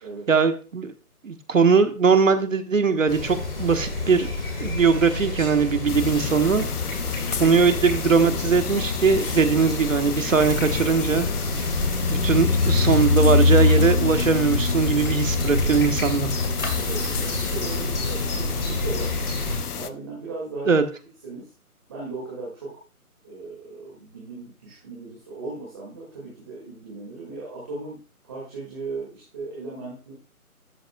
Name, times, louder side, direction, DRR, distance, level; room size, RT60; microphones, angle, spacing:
voice 1, 0.3-0.9 1.2-4.3 4.6-6.7 7.4-11.3 12.1-16.3 20.7-20.8, right 5 dB, 60° right, 8 dB, 1.4 m, -20 dB
sound 1, 3.1-19.6, left 2 dB, 40° left, 3.8 m, -29 dB
sound 2, 5.9-19.9, left 7 dB, 80° left, 0.8 m, -33 dB
sound 3, 10.4-18.4, left 3 dB, 65° left, 2.4 m, -24 dB
voice 2, 16.7-19.1 19.7-20.8 21.2-21.5 21.9-22.7 23.2-28.0 28.2-30.1, right 3 dB, 15° right, -5 dB, 2.1 m, -37 dB
12.5 x 7.9 x 2.3 m, 0.35 s
hypercardioid pair, 170°, 45 cm